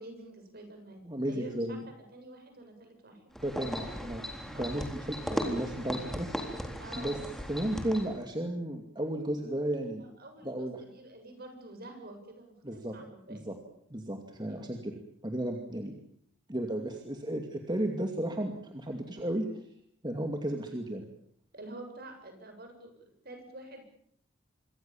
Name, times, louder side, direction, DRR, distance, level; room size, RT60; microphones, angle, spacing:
voice 1, 0.0-3.2 4.5-4.8 6.8-7.2 10.0-13.4 14.5-14.7 21.5-22.9 23.2-23.8, right 2 dB, 50° right, 5 dB, 7.7 m, -48 dB
voice 2, 1.0-1.8 3.4-6.3 7.0-7.2 7.5-10.0 10.4-10.8 12.6-12.9 13.3-13.6 13.9-15.0 15.2-15.9 16.5-19.5 20.0-21.1, right 1 dB, 20° right, 3 dB, 2.5 m, -34 dB
sound 1, 3.3-8.2, equal, ahead, 3.8 m, -37 dB
26.5 x 24.5 x 7.3 m, 0.66 s
head